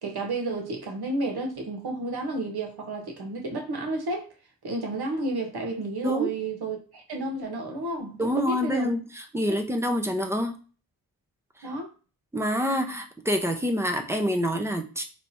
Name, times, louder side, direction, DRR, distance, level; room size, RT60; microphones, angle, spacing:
voice 1, 0.0-4.3 4.6-8.9 9.5-9.6 11.6-11.9, right 2 dB, 85° right, 1.2 m, -31 dB
voice 2, 8.2-9.0 9.3-10.5 12.3-15.0, equal, 5° right, 0.6 m, -26 dB
3.4 x 2.8 x 4.2 m
wide cardioid pair, 145°, 37 cm